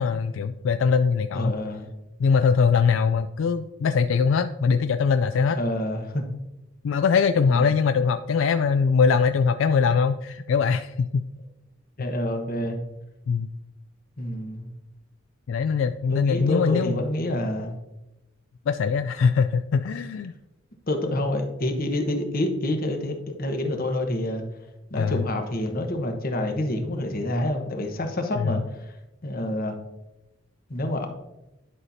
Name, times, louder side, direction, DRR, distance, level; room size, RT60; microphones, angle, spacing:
voice 1, 0.0-1.5 2.2-5.6 6.8-11.2 13.3-13.5 15.5-17.0 18.7-20.3 25.0-25.2 28.4-28.5, left 5 dB, 75° left, 10 dB, 0.3 m, -22 dB
voice 2, 1.3-1.9 5.5-6.2 7.5-7.8 12.0-12.8 14.2-14.7 16.1-17.8 20.9-24.4 24.9-28.6 29.2-29.8 30.7-31.1, left 1 dB, 50° left, 4 dB, 1.1 m, -27 dB
11.0 x 5.8 x 2.7 m, 0.95 s
head